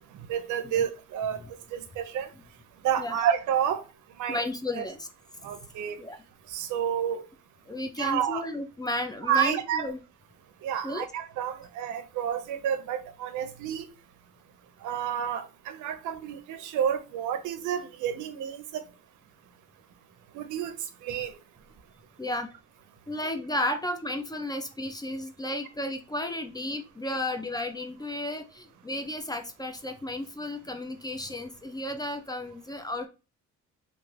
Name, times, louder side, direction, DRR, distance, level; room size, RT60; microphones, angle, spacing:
voice 1, 0.3-2.3 2.8-3.8 4.2-4.4 4.7-4.8 5.4-6.0 6.5-7.2 8.0-8.4 9.3-9.9 10.6-13.9 14.8-18.8 20.3-20.8 21.0-21.4, right 9 dB, 80° right, 0.5 m, -30 dB
voice 2, 4.3-5.1 6.0-6.2 7.1-7.3 7.7-10.0 10.8-11.1 22.2-22.5 23.1-33.1, left 1 dB, 15° left, 0.4 m, -33 dB
2.5 x 2.3 x 3.2 m
cardioid pair, 90°, 30 cm